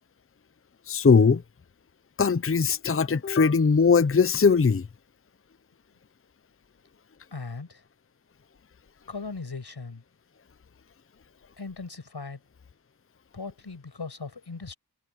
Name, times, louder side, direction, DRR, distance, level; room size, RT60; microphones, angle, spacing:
voice 1, 0.9-1.4 2.2-4.9, left 5 dB, 35° left, 0.7 m, -20 dB
voice 2, 7.3-7.8 9.1-10.0 11.6-12.4 13.3-14.8, left 4 dB, 85° left, 6.5 m, -38 dB
wide cardioid pair, 55°, 39 cm